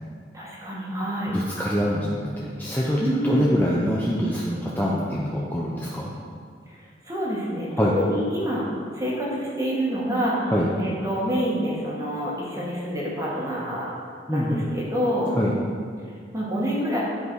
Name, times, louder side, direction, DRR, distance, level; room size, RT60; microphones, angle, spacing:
voice 1, 0.3-1.3 3.0-3.5 6.7-8.6 8.9-10.5 10.8-13.9 14.3-15.4 16.3-17.0, equal, 20° right, -5 dB, 1.7 m, -27 dB
voice 2, 1.3-6.1 7.8-7.9 10.4-10.7 14.3-14.7 15.3-15.5, equal, 10° left, -6 dB, 0.7 m, -25 dB
10.5 x 5.3 x 4.7 m, 2.1 s
head